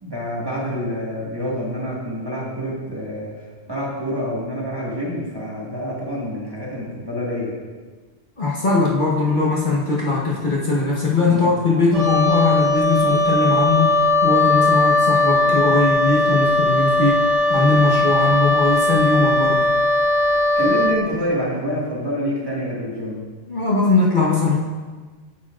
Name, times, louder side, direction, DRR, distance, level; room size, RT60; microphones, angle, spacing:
voice 1, 0.0-3.3 3.7-7.5 11.1-11.5 20.5-23.2, equal, 20° right, -5 dB, 1.5 m, -27 dB
voice 2, 8.4-19.7 23.5-24.5, left 3 dB, 45° left, -5 dB, 1.1 m, -20 dB
Wind instrument woodwind instrument, 11.9-21.0, left 2 dB, 85° right, 1.2 m, -18 dB
8.5 x 8.0 x 2.4 m, 1.4 s
omnidirectional pair, 1.2 m